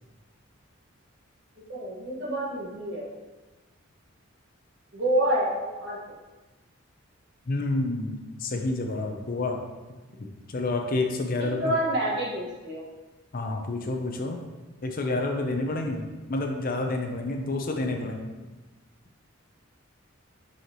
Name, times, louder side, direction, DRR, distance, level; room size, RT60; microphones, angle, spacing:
voice 1, 1.6-3.1 4.9-6.0 11.4-12.8, right 1 dB, 60° right, -4 dB, 1.6 m, -28 dB
voice 2, 7.5-9.6 10.2-11.8 13.3-14.4 14.8-18.3, left 2 dB, 45° left, 3 dB, 0.6 m, -29 dB
5.7 x 5.5 x 3.0 m, 1.2 s
head